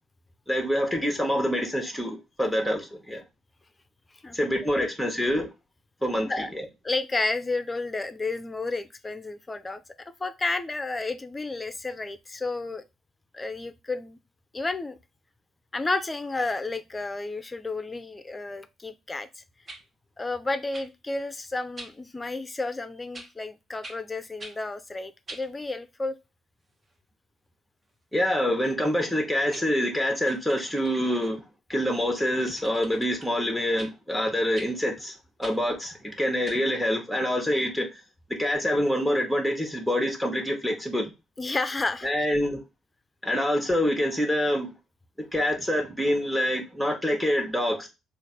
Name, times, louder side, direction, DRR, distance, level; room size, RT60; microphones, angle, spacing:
voice 1, 0.5-3.2 4.3-5.5 6.0-6.6 28.1-31.4 31.7-35.1 35.4-37.9 38.3-41.1 42.0-42.6 43.2-44.7 45.3-47.9, equal, ahead, 1.1 m, -26 dB
voice 2, 6.8-9.8 10.2-12.8 13.3-14.2 14.5-14.9 15.7-19.4 20.2-26.1 41.4-42.3, left 3 dB, 25° left, 0.6 m, -31 dB
sound 1, 19.7-19.8 20.7-20.9 21.8-21.9 23.1-23.3 23.8-24.0 24.4-24.6 25.3-25.5 29.1-29.2 29.5-29.7 30.3-31.3 32.2-33.3 33.8-33.9 34.5-34.7 35.4-35.6 36.5-36.6, right 2 dB, 35° right, 1.0 m, -44 dB
3.2 x 2.5 x 4.1 m
hypercardioid pair, 50°, 0 cm